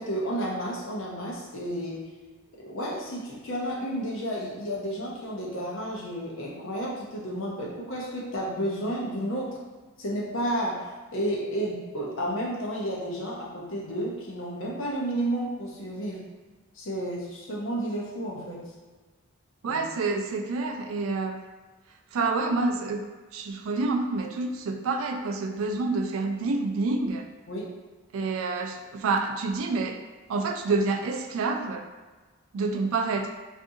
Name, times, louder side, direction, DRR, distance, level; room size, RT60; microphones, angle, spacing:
voice 1, 0.0-2.1 2.6-9.6 10.0-16.2 16.7-18.7 19.7-19.8 27.5-27.7, right 1 dB, 75° left, -3 dB, 0.7 m, -31 dB
voice 2, 19.6-21.4 22.1-23.0 23.3-27.3 28.1-30.0 30.3-31.9 32.5-33.3, right 3 dB, 85° right, 5 dB, 0.3 m, -28 dB
2.6 x 2.4 x 2.6 m, 1.3 s
head